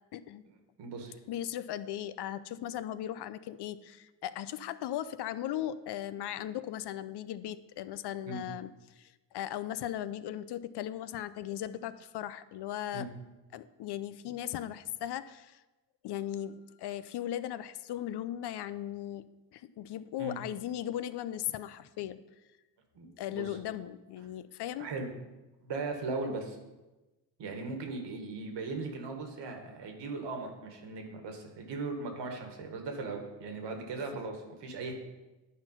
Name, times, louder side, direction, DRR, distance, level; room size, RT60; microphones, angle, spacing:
voice 1, 0.1-0.4 1.3-8.7 9.0-13.1 13.5-15.6 16.0-19.3 19.5-22.2 23.2-24.9, left 11 dB, 65° left, 14 dB, 0.6 m, -37 dB
voice 2, 0.8-1.1 8.3-8.4 12.9-13.1 20.2-20.4 23.0-23.6 24.8-25.1 25.6-26.6 27.4-34.9, right 3 dB, 70° right, 3 dB, 1.7 m, -38 dB
10.0 x 4.4 x 5.5 m, 1.1 s
cardioid pair, 80°, 44 cm